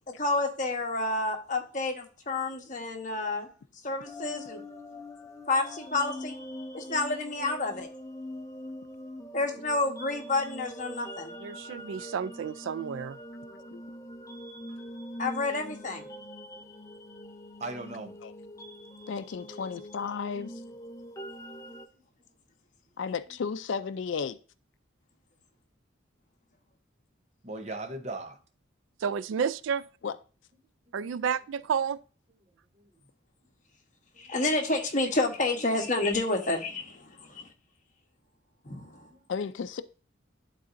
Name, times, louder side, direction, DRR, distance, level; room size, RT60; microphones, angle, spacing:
voice 1, 0.2-3.5 3.8-4.6 5.5-6.3 6.7-7.9 9.3-11.3 15.2-16.1 34.2-37.5 38.6-39.1, left 2 dB, 40° left, 1.1 m, -29 dB
sound 1, 4.0-21.9, left 1 dB, 15° left, 0.5 m, -43 dB
voice 2, 11.4-13.2 29.0-29.8 30.9-32.0, right 7 dB, 75° right, 0.3 m, -31 dB
voice 3, 17.6-18.1 27.4-28.4 30.9-31.0 34.1-34.3 39.1-39.2, right 2 dB, 35° right, 0.8 m, -38 dB
voice 4, 19.1-20.5 23.0-24.4 30.0-30.1 39.3-39.8, left 6 dB, 70° left, 0.4 m, -33 dB
11.0 x 4.0 x 2.6 m
head